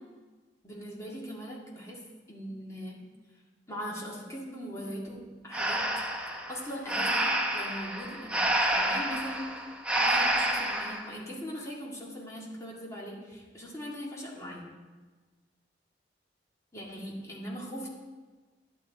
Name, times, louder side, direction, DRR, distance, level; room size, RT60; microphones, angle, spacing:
voice 1, 0.6-2.0 2.3-3.0 3.7-5.8 6.5-14.7 16.7-17.9, equal, 20° left, -4 dB, 2.0 m, -40 dB
Breathing, 5.5-11.1, right 1 dB, 5° right, 0.8 m, -29 dB
11.5 x 9.0 x 4.0 m, 1.3 s
head